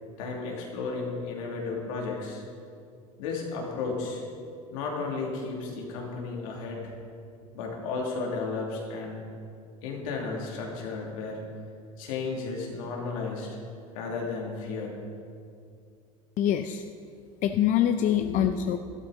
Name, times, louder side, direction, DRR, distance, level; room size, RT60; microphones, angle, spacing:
voice 1, 0.2-2.4 3.2-4.2 4.7-6.9 7.5-9.2 9.8-11.5 12.0-13.6 13.9-15.0 18.2-18.4, left 4 dB, 75° left, -1 dB, 2.6 m, -33 dB
voice 2, 16.4-16.9 17.4-18.8, left 10 dB, 45° left, 8 dB, 0.6 m, -24 dB
12.0 x 12.0 x 4.0 m, 2.4 s
hypercardioid pair, 90°, 18 cm